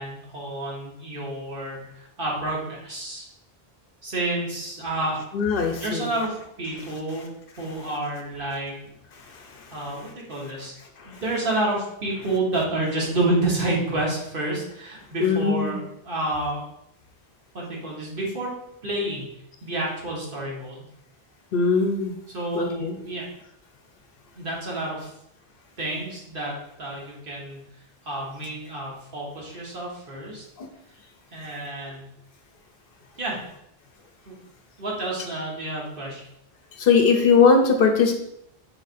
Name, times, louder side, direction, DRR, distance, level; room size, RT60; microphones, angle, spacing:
voice 1, 0.0-3.2 4.0-5.2 5.8-7.3 7.6-8.8 9.7-10.7 11.0-16.6 17.5-18.5 18.8-19.2 19.6-20.8 22.3-23.2 24.3-25.1 25.8-27.6 28.0-30.4 31.3-32.1 33.2-33.4 34.3-34.4 34.8-36.2, right 2 dB, 60° right, -3 dB, 1.3 m, -29 dB
voice 2, 5.3-6.1 9.2-9.7 11.0-11.2 15.2-15.8 21.5-22.2 22.5-22.9 30.6-30.7 36.8-38.1, left 5 dB, 65° left, 4 dB, 0.8 m, -20 dB
4.7 x 4.0 x 2.5 m, 0.76 s
omnidirectional pair, 1.0 m